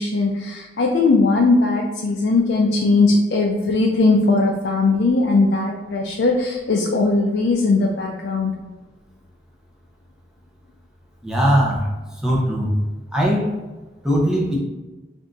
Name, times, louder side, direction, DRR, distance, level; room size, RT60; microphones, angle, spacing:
voice 1, 0.0-8.5, left 3 dB, 70° left, 0 dB, 0.4 m, -19 dB
voice 2, 11.2-11.9 12.2-12.7 13.1-13.4 14.0-14.6, equal, 5° right, -4 dB, 0.7 m, -19 dB
3.4 x 2.6 x 3.9 m, 1.2 s
head